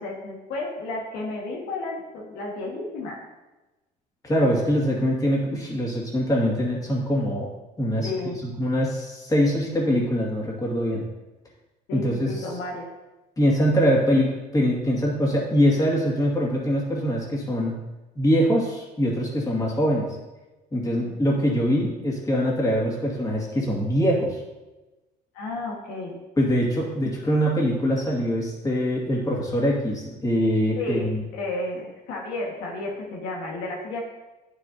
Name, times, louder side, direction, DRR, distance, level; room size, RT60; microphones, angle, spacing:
voice 1, 0.0-3.2 8.0-8.4 11.9-12.9 21.0-21.2 25.3-26.2 30.8-34.0, left 2 dB, 85° left, -1 dB, 1.8 m, -32 dB
voice 2, 4.2-7.5 7.8-8.1 8.6-11.1 11.9-12.3 13.4-17.7 18.2-20.1 20.7-24.4 26.4-31.2, equal, 20° left, -3 dB, 2.2 m, -23 dB
10.0 x 6.8 x 2.9 m, 1.1 s
cardioid pair, 110°, 17 cm